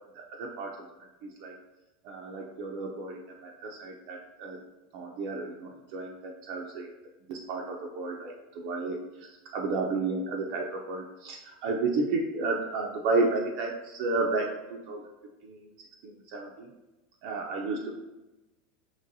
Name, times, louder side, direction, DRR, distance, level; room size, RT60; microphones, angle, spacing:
voice 1, 0.1-0.9 1.2-1.5 2.0-4.6 4.9-6.9 7.3-9.3 9.5-15.0 15.4-15.7 16.0-16.7 17.2-17.9, right 3 dB, 45° right, 0 dB, 0.4 m, -32 dB
5.3 x 3.0 x 2.6 m, 1.1 s
supercardioid pair, 170°, 0 cm